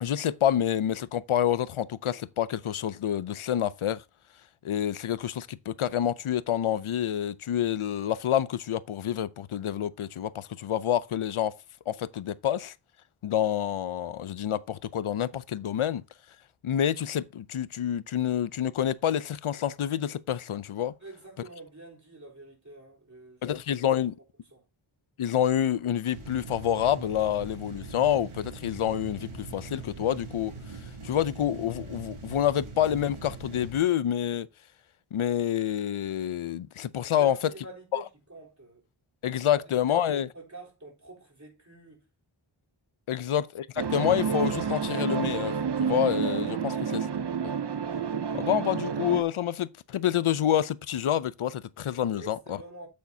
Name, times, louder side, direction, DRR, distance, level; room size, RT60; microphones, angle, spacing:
voice 1, 0.0-4.0 4.6-11.5 11.9-12.7 13.2-16.0 16.6-20.9 23.4-24.1 25.2-30.5 31.0-34.5 35.1-37.4 37.9-38.0 39.2-40.3 43.1-47.1 47.4-47.5 48.3-52.6, left 10 dB, 85° left, 0.6 m, -28 dB
voice 2, 21.0-23.4 23.9-24.0 24.5-24.6 37.2-38.8 39.5-42.0 46.6-46.8 52.1-52.9, right 2 dB, 35° right, 3.6 m, -47 dB
sound 1, 26.1-33.8, right 3 dB, 90° right, 2.0 m, -42 dB
sound 2, 43.8-49.2, right 6 dB, 60° right, 0.7 m, -29 dB
8.5 x 8.2 x 2.7 m
wide cardioid pair, 55°, 48 cm